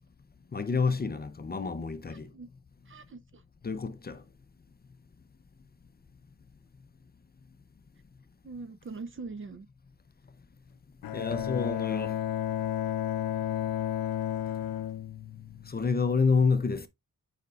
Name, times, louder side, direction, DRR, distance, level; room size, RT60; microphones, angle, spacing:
voice 1, 0.5-2.3 3.6-4.2 11.1-12.2 15.7-16.9, left 4 dB, 30° left, 0.5 m, -28 dB
voice 2, 2.1-2.5 2.9-3.4 8.4-9.7, right 4 dB, 40° right, 0.5 m, -42 dB
Bowed string instrument, 11.0-16.0, left 11 dB, 85° left, 0.5 m, -32 dB
9.2 x 5.0 x 2.3 m
wide cardioid pair, 165°, 34 cm